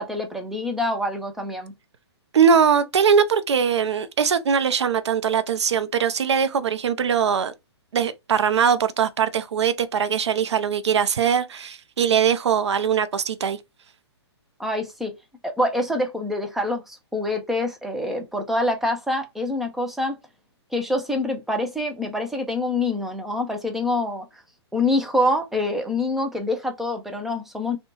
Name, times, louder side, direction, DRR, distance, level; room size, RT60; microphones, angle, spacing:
voice 1, 0.0-1.7 14.6-15.1 15.4-20.2 20.7-24.3 24.7-27.8, left 1 dB, ahead, 0.3 m, -25 dB
voice 2, 2.3-7.5 7.9-13.6, right 7 dB, 85° right, 0.5 m, -21 dB
2.8 x 2.2 x 2.8 m
hypercardioid pair, 145°, 14 cm